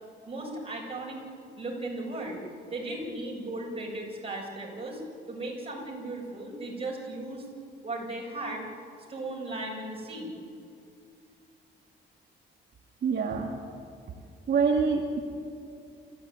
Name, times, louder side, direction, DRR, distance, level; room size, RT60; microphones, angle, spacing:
voice 1, 0.3-1.2 1.6-2.4 2.7-5.0 5.3-7.5 7.8-8.7 9.1-10.3, right 2 dB, 30° right, -1 dB, 7.7 m, -36 dB
voice 2, 13.0-13.6 14.5-15.2, right 5 dB, 60° right, 1 dB, 2.1 m, -25 dB
28.5 x 15.0 x 9.7 m, 2.5 s
cardioid pair, 90°, 20 cm